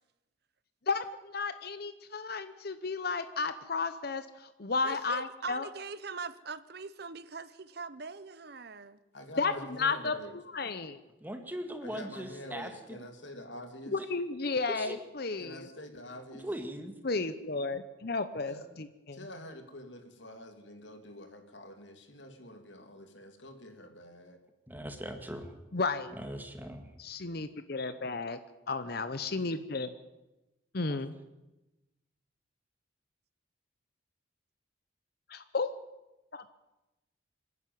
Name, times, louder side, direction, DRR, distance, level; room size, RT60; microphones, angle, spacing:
voice 1, 0.9-5.7 9.4-10.2 10.5-10.9 13.9-15.7 17.0-19.3 25.7-26.2 27.0-28.4 28.7-29.9 30.7-31.1 35.3-35.7 36.3-36.4, left 4 dB, 50° left, 11 dB, 0.8 m, -33 dB
voice 2, 4.8-9.0, right 4 dB, 55° right, 15 dB, 0.9 m, -42 dB
voice 3, 9.1-10.3 11.8-13.9 15.4-16.5 18.5-18.7 19.1-24.4, left 1 dB, 70° left, 6 dB, 2.6 m, -47 dB
voice 4, 11.2-13.0 14.0-14.1 14.7-15.0 16.4-16.9 24.7-25.6 26.1-26.9 30.9-31.0, equal, 10° right, 6 dB, 1.9 m, -40 dB
26.0 x 11.0 x 9.4 m, 1.0 s
head